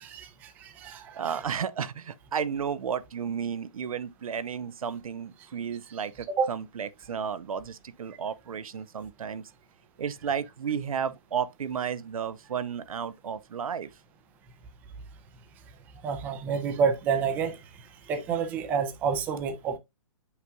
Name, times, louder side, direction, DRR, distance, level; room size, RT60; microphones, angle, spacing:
voice 1, 0.0-1.3 6.4-6.5 16.0-17.6 18.1-19.8, right 6 dB, 10° right, 0.4 m, -29 dB
voice 2, 1.1-9.5 10.0-13.9, right 7 dB, 85° right, 0.7 m, -33 dB
7.7 x 5.7 x 2.3 m
hypercardioid pair, 165°, 18 cm